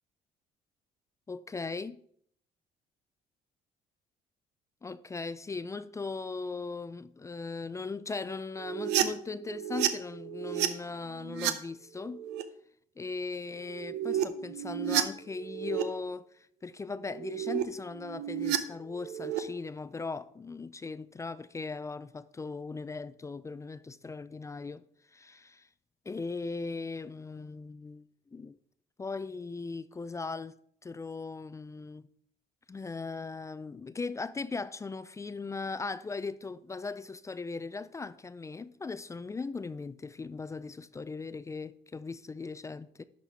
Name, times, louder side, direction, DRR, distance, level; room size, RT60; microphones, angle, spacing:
voice 1, 1.3-2.0 4.8-12.2 13.0-24.8 25.1-25.7 26.1-28.6 29.0-30.5 30.8-32.1 32.7-43.0, left 4 dB, 20° left, 0.3 m, -38 dB
sound 1, 8.6-10.7 11.1-11.5 12.0-12.4 13.6-15.8 17.0-17.6 17.9-19.4, right 12 dB, 90° right, 0.7 m, -32 dB
11.0 x 4.2 x 4.6 m
cardioid pair, 110°, 17 cm